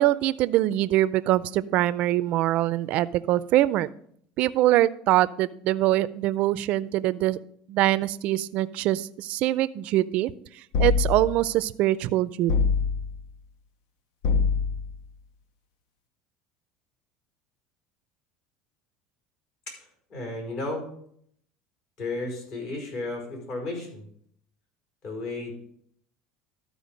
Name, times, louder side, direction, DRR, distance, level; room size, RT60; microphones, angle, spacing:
voice 1, 0.0-3.9 4.4-7.4 7.7-10.3 10.8-12.5, right 15 dB, 55° right, 15 dB, 0.4 m, -23 dB
sound 1, 10.7-11.5 12.5-13.2 14.2-15.0, left 5 dB, 80° left, 0.8 m, -24 dB
voice 2, 19.8-20.9 22.0-24.1 25.0-25.5, left 2 dB, 55° left, 1 dB, 4.8 m, -33 dB
12.5 x 4.9 x 5.1 m, 0.65 s
supercardioid pair, 120°, 3 cm